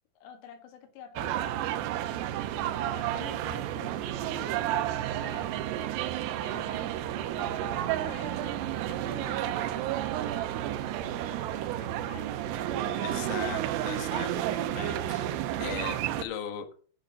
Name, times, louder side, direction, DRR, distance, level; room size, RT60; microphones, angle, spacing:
voice 1, 0.2-2.3 2.7-5.9 6.4-13.7 14.2-14.4, left 7 dB, 85° left, 4 dB, 4.5 m, -49 dB
sound 1, 1.2-16.2, right 12 dB, 80° right, 2.5 m, -31 dB
voice 2, 13.0-14.3 14.7-15.3 15.6-16.7, left 9 dB, 60° left, 4 dB, 2.5 m, -38 dB
10.5 x 6.0 x 6.7 m, 0.42 s
omnidirectional pair, 5.6 m